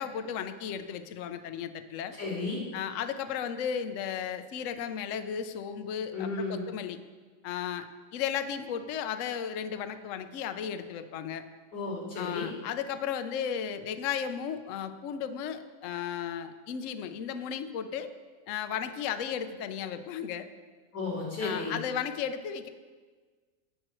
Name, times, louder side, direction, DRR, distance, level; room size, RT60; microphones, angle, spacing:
voice 1, 0.0-2.1 2.7-7.0 7.4-7.9 8.1-11.5 12.2-18.1 18.5-20.5 21.4-22.7, left 8 dB, 85° left, 8 dB, 0.6 m, -34 dB
voice 2, 2.2-2.6 6.1-6.7 11.7-12.5 20.9-21.8, left 3 dB, 65° left, -6 dB, 4.2 m, -33 dB
17.5 x 7.6 x 3.1 m, 1.4 s
omnidirectional pair, 2.1 m